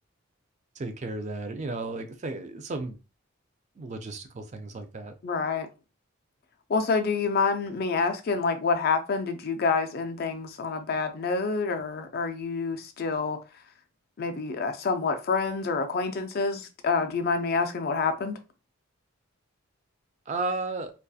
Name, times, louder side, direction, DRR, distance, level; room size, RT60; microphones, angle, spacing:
voice 1, 0.8-3.0 3.8-5.1 20.3-20.9, right 3 dB, 35° right, 0.3 m, -34 dB
voice 2, 5.2-5.7 6.7-13.4 14.2-18.4, left 4 dB, 45° left, 0.3 m, -27 dB
2.6 x 2.3 x 2.3 m
head